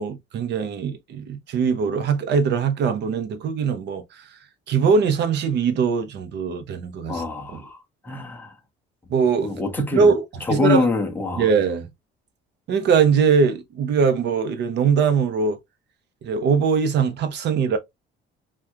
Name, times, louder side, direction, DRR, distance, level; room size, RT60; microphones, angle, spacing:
voice 1, 0.0-4.4 4.7-7.2 7.5-7.6 9.1-9.5 9.9-10.9 11.4-11.9 12.7-15.6 16.2-17.8, right 6 dB, 55° right, 0.7 m, -21 dB
voice 2, 7.1-7.8 8.0-8.5 9.4-10.1 10.5-11.5, left 3 dB, 10° left, 0.7 m, -24 dB
3.5 x 2.3 x 2.7 m
cardioid pair, 155°, 21 cm